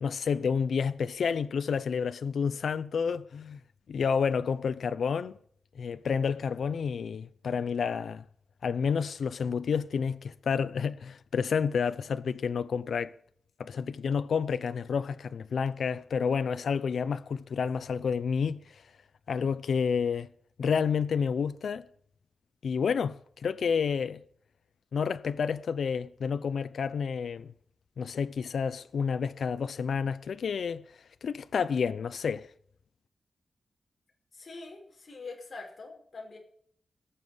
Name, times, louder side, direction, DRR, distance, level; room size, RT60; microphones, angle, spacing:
voice 1, 0.0-3.6 3.9-5.4 5.8-8.2 8.6-13.1 13.6-18.8 19.3-20.3 20.6-21.9 22.6-24.2 24.9-27.5 28.0-30.8 31.2-32.5, left 6 dB, 70° left, 0.6 m, -30 dB
voice 2, 34.4-36.4, left 3 dB, 40° left, 5.4 m, -44 dB
18.0 x 7.2 x 7.9 m
wide cardioid pair, 150°, 0 cm